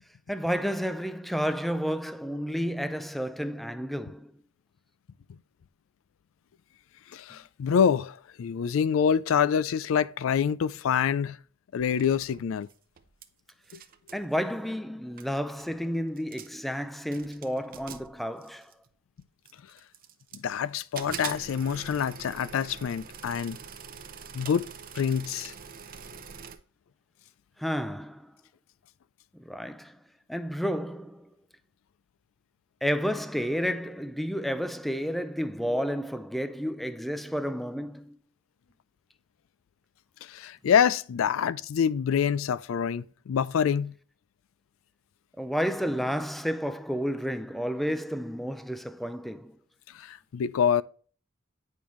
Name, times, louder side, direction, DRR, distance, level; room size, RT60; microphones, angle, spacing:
voice 1, 0.3-4.3 14.1-18.7 27.6-28.3 29.4-30.0 30.3-31.3 32.8-38.2 45.4-49.6, equal, ahead, 0.4 m, -31 dB
voice 2, 7.1-11.4 11.7-12.7 20.3-23.6 24.3-24.6 24.9-25.5 40.3-43.9 49.9-50.8, left 7 dB, 80° left, 0.3 m, -26 dB
sound 1, 11.8-13.2 13.5-14.2 14.9-15.0 15.2-15.7 16.2-16.7 17.1-18.9 19.4-20.6 20.9-26.6, right 7 dB, 45° right, 0.6 m, -44 dB
8.7 x 5.4 x 3.1 m
head